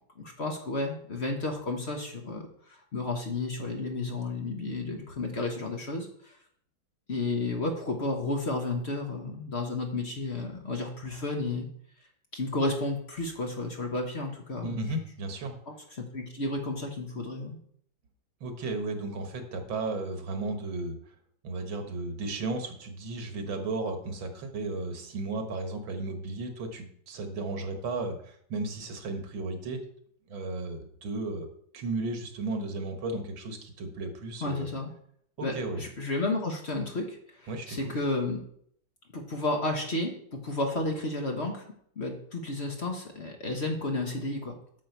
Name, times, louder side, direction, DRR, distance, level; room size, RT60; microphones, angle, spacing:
voice 1, 0.2-6.4 7.1-11.7 12.3-15.0 15.7-17.6 34.4-34.9 35.4-38.4 39.1-44.6, left 2 dB, 40° left, 2 dB, 1.2 m, -32 dB
voice 2, 14.6-15.6 18.4-21.0 21.4-29.8 30.3-31.5 31.7-34.7 35.4-35.8 37.5-37.9, right 2 dB, 85° right, 5 dB, 2.2 m, -34 dB
9.3 x 7.1 x 4.5 m, 0.64 s
omnidirectional pair, 2.1 m